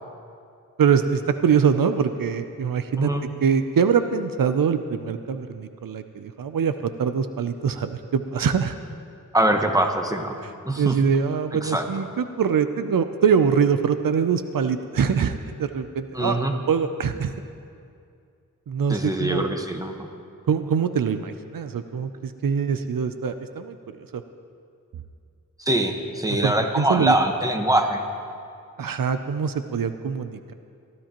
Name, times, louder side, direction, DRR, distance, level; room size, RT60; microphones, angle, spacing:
voice 1, 0.8-3.1 3.4-8.8 10.4-10.5 10.8-16.4 16.7-17.4 18.7-19.5 20.5-24.2 26.3-27.2 28.8-30.5, right 6 dB, 80° right, 10 dB, 0.5 m, -23 dB
voice 2, 9.3-10.4 10.7-10.9 11.6-11.9 16.1-16.5 18.9-20.1 25.6-28.0, right 1 dB, 10° right, 4 dB, 1.2 m, -23 dB
20.0 x 13.0 x 3.0 m, 2.4 s
wide cardioid pair, 55°, 33 cm